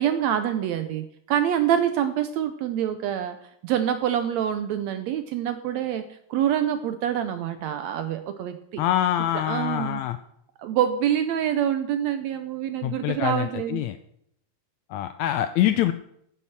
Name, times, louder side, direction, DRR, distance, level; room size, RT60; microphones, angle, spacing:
voice 1, 0.0-3.4 3.6-6.0 6.3-8.8 9.3-10.0 10.6-13.8, right 10 dB, 80° right, 9 dB, 1.6 m, -26 dB
voice 2, 8.8-10.2 12.8-14.0 14.9-15.9, left 12 dB, 80° left, 11 dB, 1.6 m, -25 dB
9.8 x 7.6 x 7.2 m, 0.74 s
omnidirectional pair, 3.7 m